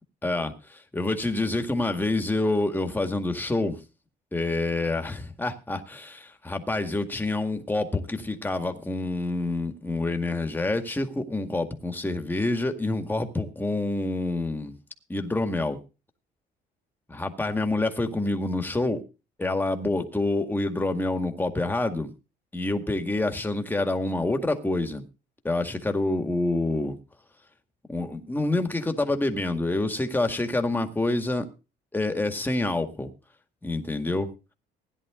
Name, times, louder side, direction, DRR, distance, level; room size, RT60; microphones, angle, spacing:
voice 1, 0.2-0.5 0.9-3.8 4.3-14.8 15.1-15.8 17.1-19.0 19.4-22.1 22.5-25.1 25.4-27.0 27.9-31.5 31.9-33.1 33.6-34.3, left 2 dB, 10° left, 2.0 m, -27 dB
16.5 x 10.5 x 3.8 m
cardioid pair, 110°, 17 cm